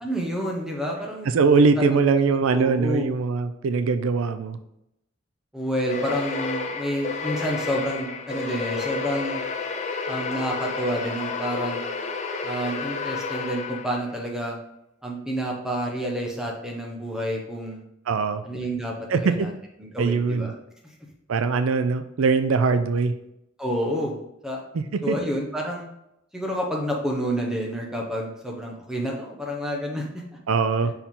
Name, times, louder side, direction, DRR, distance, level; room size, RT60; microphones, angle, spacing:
voice 1, 0.0-1.3 1.8-1.9 2.1-2.2 2.5-3.1 5.5-9.4 10.1-11.8 12.4-14.6 15.0-17.8 18.4-19.5 19.8-20.5 23.6-24.6 25.0-25.9 26.3-30.2, equal, 5° right, -1 dB, 1.0 m, -29 dB
voice 2, 1.3-4.6 18.1-18.4 19.1-19.5 20.0-20.5 21.3-23.1 24.7-25.2 30.5-30.9, right 4 dB, 80° right, 10 dB, 0.4 m, -22 dB
sound 1, 5.9-14.2, left 4 dB, 35° left, 0.6 m, -31 dB
5.6 x 4.6 x 3.7 m, 0.82 s
head